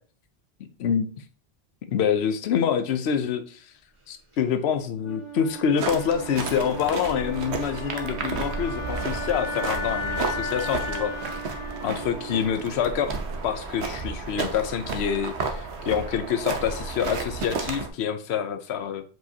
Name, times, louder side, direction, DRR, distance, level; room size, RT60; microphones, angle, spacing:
voice 1, 1.9-3.7 4.1-11.1 11.8-13.1 13.4-19.0, left 8 dB, 75° left, 9 dB, 0.9 m, -26 dB
Wind instrument woodwind instrument, 5.0-13.0, left 1 dB, 30° right, 1.4 m, -35 dB
sound 1, 5.8-17.9, right 4 dB, 85° right, 1.2 m, -32 dB
7.8 x 4.8 x 2.8 m, 0.40 s
omnidirectional pair, 1.1 m